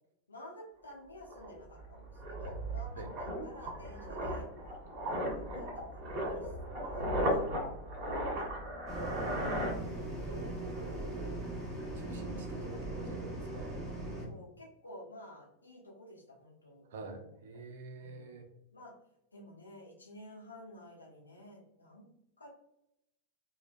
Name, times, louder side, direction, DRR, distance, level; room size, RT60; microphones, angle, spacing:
voice 1, 0.3-4.5 5.1-8.7 14.2-17.6 18.0-18.3 18.7-18.9 19.3-22.1 22.4-22.5, left 1 dB, 80° left, -1 dB, 0.6 m, -52 dB
sound 1, 0.9-1.0 1.3-10.4 10.6-10.9, equal, 40° right, 1.4 m, -36 dB
sound 2, 8.9-14.3, right 1 dB, 5° right, 1.1 m, -40 dB
voice 2, 9.0-11.4 11.9-13.8 16.9-18.5, right 3 dB, 60° right, 4 dB, 0.5 m, -46 dB
3.4 x 2.1 x 2.4 m, 0.80 s
figure-of-eight pair, 90°, 0 cm